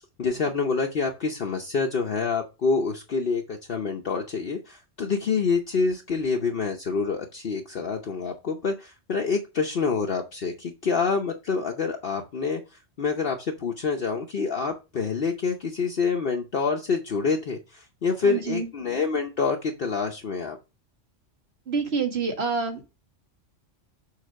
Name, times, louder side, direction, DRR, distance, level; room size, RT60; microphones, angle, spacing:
voice 1, 0.0-12.6 13.0-20.6, left 5 dB, 50° left, 2 dB, 1.0 m, -27 dB
voice 2, 18.2-18.7 21.7-22.8, right 5 dB, 55° right, 4 dB, 1.8 m, -27 dB
6.8 x 4.0 x 6.4 m, 0.28 s
omnidirectional pair, 1.3 m